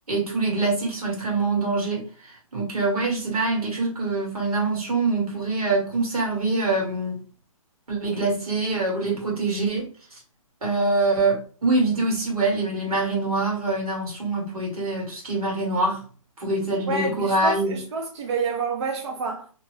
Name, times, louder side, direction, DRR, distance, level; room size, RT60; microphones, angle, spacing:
voice 1, 0.1-7.2 7.9-9.9 10.6-16.0 16.4-17.8, right 3 dB, 80° right, 1.6 m, -24 dB
voice 2, 16.9-19.5, right 4 dB, 50° right, 0.5 m, -28 dB
2.8 x 2.2 x 3.3 m
hypercardioid pair, 145°, 19 cm